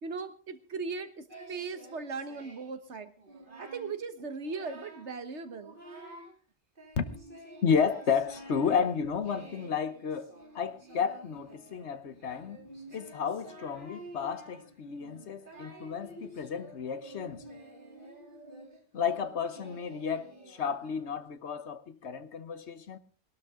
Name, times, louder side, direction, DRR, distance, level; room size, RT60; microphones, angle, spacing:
voice 1, 0.0-3.1 3.6-5.8, right 4 dB, 90° right, 1.6 m, -38 dB
Singing, 1.3-2.8 3.2-3.9 4.3-5.1 5.4-6.3 6.8-21.3, right 1 dB, 50° right, 3.2 m, -50 dB
voice 2, 7.6-12.6 12.9-17.5 18.9-23.0, left 6 dB, 80° left, 1.3 m, -32 dB
20.5 x 12.5 x 3.7 m
omnidirectional pair, 1.1 m